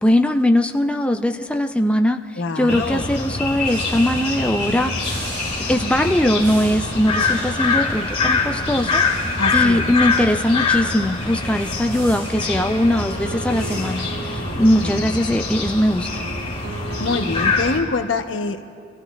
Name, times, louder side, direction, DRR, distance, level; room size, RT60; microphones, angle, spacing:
voice 1, 0.0-5.2 5.7-16.2, left 1 dB, 5° left, 6 dB, 0.3 m, -20 dB
voice 2, 2.4-3.0 9.4-10.0 14.8-15.2 16.7-18.6, left 3 dB, 75° left, 8 dB, 0.7 m, -25 dB
sound 1, 2.7-17.8, left 3 dB, 30° left, 2.0 m, -24 dB
sound 2, 3.6-14.1, right 1 dB, 60° right, 3.1 m, -38 dB
sound 3, 12.5-15.6 16.0-17.5, right 2 dB, 80° right, 3.5 m, -35 dB
26.0 x 15.5 x 2.3 m, 2.3 s
head